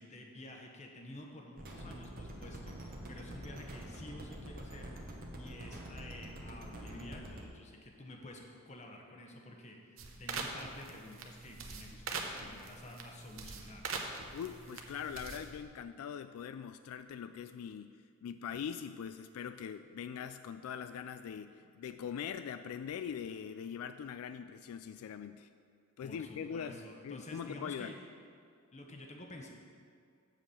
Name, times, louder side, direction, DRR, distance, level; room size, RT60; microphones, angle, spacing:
voice 1, 0.0-4.9 5.4-8.4 8.7-13.9 26.0-28.0 28.7-29.5, left 1 dB, 30° left, 1 dB, 0.9 m, -50 dB
sound 1, 1.6-7.5, right 1 dB, 40° right, 1.0 m, -46 dB
sound 2, 10.0-15.6, right 4 dB, 65° right, 0.8 m, -43 dB
voice 2, 14.3-25.5 26.0-27.9, left 7 dB, 85° left, 12 dB, 0.3 m, -42 dB
7.7 x 4.8 x 7.0 m, 2.2 s
head